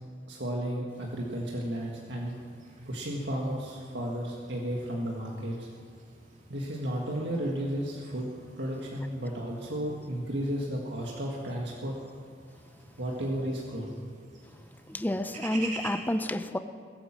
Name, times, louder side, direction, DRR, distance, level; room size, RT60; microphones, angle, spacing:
voice 1, 0.3-2.4 2.8-5.7 6.5-8.3 8.6-12.0 13.0-13.9, equal, 80° right, -2 dB, 1.8 m, -33 dB
sound 1, 0.9-16.0, right 3 dB, 45° right, 2.8 m, -49 dB
voice 2, 14.9-16.6, left 1 dB, 10° left, 11 dB, 0.6 m, -29 dB
21.0 x 9.0 x 7.5 m, 2.1 s
head